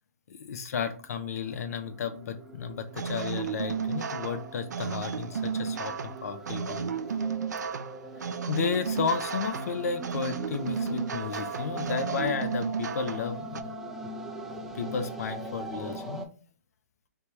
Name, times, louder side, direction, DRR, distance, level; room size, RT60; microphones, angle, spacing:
voice 1, 0.3-6.9 8.5-13.7 14.5-16.3, left 6 dB, 60° left, 0.6 m, -33 dB
sound 1, 0.8-16.3, right 2 dB, ahead, 0.4 m, -42 dB
sound 2, 2.9-13.6, right 6 dB, 85° right, 0.4 m, -33 dB
3.4 x 2.8 x 3.3 m
hypercardioid pair, 150°, 9 cm